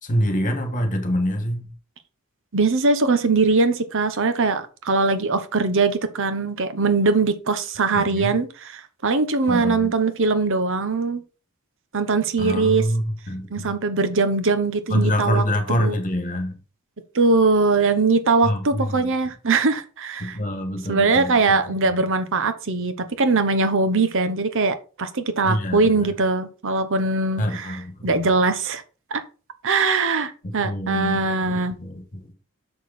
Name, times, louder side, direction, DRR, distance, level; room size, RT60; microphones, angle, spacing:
voice 1, 0.0-1.7 7.9-8.3 9.5-9.9 12.4-13.7 14.9-16.6 18.4-19.1 20.2-22.0 25.4-26.1 27.4-28.2 30.4-32.3, equal, 40° left, 1.9 m, -26 dB
voice 2, 2.5-11.2 11.9-12.8 13.5-15.9 17.1-20.4 20.9-28.8 29.1-29.2 29.6-31.8, right 3 dB, 60° right, 1.0 m, -21 dB
6.8 x 6.5 x 4.2 m
head